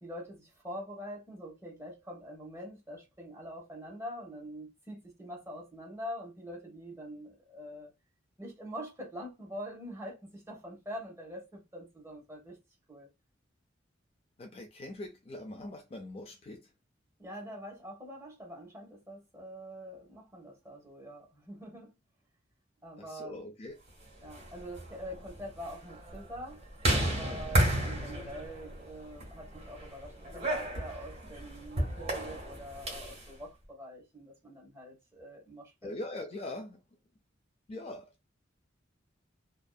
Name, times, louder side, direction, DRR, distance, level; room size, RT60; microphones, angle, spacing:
voice 1, 0.0-7.9 8.4-12.6 12.9-13.1 17.2-21.9 22.8-23.4 24.2-26.6 27.0-35.9, equal, 15° right, 1.0 m, -44 dB
voice 2, 14.4-16.7 23.0-23.8 35.8-36.8 37.7-38.1, left 2 dB, 30° left, 0.4 m, -42 dB
sound 1, 24.1-33.2, right 1 dB, 35° right, 1.4 m, -33 dB
2.6 x 2.3 x 2.3 m
head